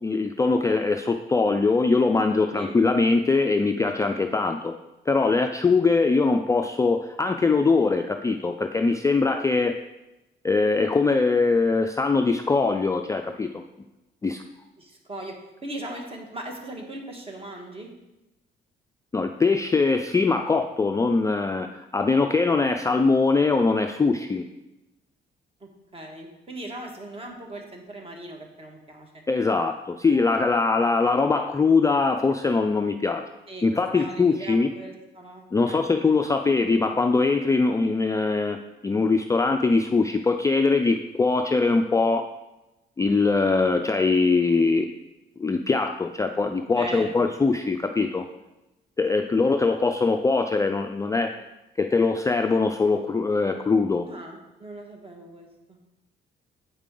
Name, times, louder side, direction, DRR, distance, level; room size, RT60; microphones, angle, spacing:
voice 1, 0.0-4.7 5.1-9.8 10.4-13.6 14.2-14.4 19.1-24.5 29.3-33.2 33.6-34.7 35.5-42.3 43.0-44.9 45.4-48.3 49.0-51.3 51.8-54.1, left 4 dB, 15° left, 5 dB, 0.3 m, -22 dB
voice 2, 14.8-15.3 15.6-17.9 25.6-29.2 33.5-33.7 33.9-35.8 46.7-47.3 54.0-55.8, right 1 dB, 30° right, 2 dB, 1.5 m, -39 dB
8.3 x 4.8 x 3.7 m, 1.0 s
cardioid pair, 90°, 20 cm